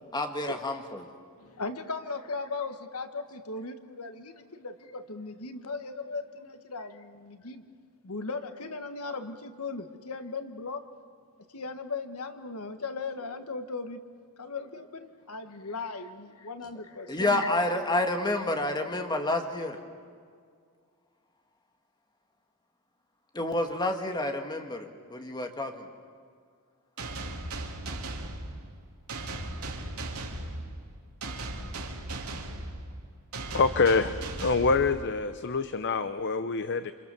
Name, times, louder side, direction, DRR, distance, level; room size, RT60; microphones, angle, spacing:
voice 1, 0.1-1.1 17.1-19.8 23.3-25.9, left 2 dB, 20° left, 5 dB, 1.9 m, -29 dB
voice 2, 1.4-7.6 8.0-10.9 11.5-14.0 14.4-17.5, left 3 dB, 85° left, 9 dB, 1.5 m, -37 dB
sound 1, 27.0-35.4, right 2 dB, 80° right, 3.1 m, -37 dB
voice 3, 33.5-36.9, left 4 dB, 55° left, 12 dB, 0.7 m, -26 dB
28.0 x 27.5 x 6.9 m, 2.1 s
head